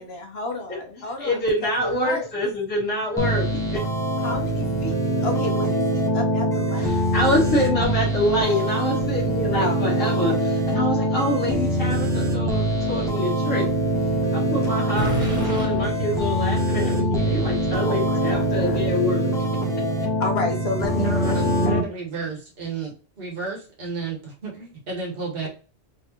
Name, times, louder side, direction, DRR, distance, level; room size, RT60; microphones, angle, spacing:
voice 1, 0.0-2.3 4.2-6.9 9.3-9.8 13.1-13.6 17.9-18.8 20.2-21.7, left 2 dB, 55° left, 3 dB, 1.1 m, -32 dB
voice 2, 1.2-3.8 6.8-13.7 14.3-19.3, left 1 dB, 80° left, -6 dB, 2.0 m, -26 dB
sound 1, 3.2-21.8, right 1 dB, 5° left, 0.8 m, -23 dB
sound 2, 14.9-18.7, right 1 dB, 75° right, 2.0 m, -31 dB
voice 3, 21.0-25.5, right 4 dB, 50° right, -3 dB, 1.7 m, -31 dB
4.1 x 3.3 x 2.9 m, 0.35 s
omnidirectional pair, 1.3 m